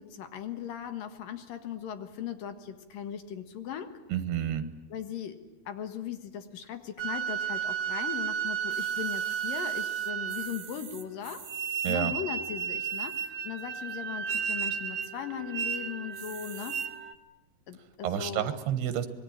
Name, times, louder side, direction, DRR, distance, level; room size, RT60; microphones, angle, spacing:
voice 1, 0.0-4.0 4.9-5.4 5.7-11.5 11.9-16.8 17.7-18.6, left 9 dB, 65° left, 8 dB, 3.0 m, -38 dB
voice 2, 4.1-4.7 11.8-12.1 18.0-19.1, right 10 dB, 85° right, 11 dB, 3.5 m, -29 dB
sound 1, 7.0-10.8 11.5-17.1, right 8 dB, 65° right, 2.4 m, -33 dB
sound 2, 8.7-12.0 12.7-13.4 13.9-14.0 14.2-14.3 14.7-15.1 15.6-15.8 16.1-16.9 17.6-17.7, right 8 dB, 50° right, 2.4 m, -48 dB
25.5 x 21.5 x 10.0 m, 1.0 s
omnidirectional pair, 4.5 m